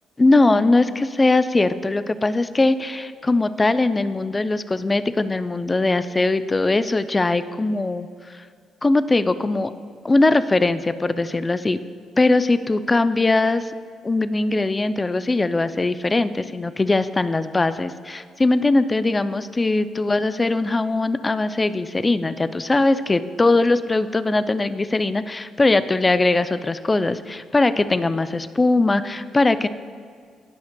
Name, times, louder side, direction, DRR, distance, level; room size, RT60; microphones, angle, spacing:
voice 1, 0.2-8.1 8.8-9.7 10.0-11.8 12.2-13.7 14.0-29.7, left 2 dB, 20° left, 12 dB, 0.3 m, -20 dB
16.5 x 5.6 x 2.2 m, 2.1 s
cardioid pair, 90°, 0 cm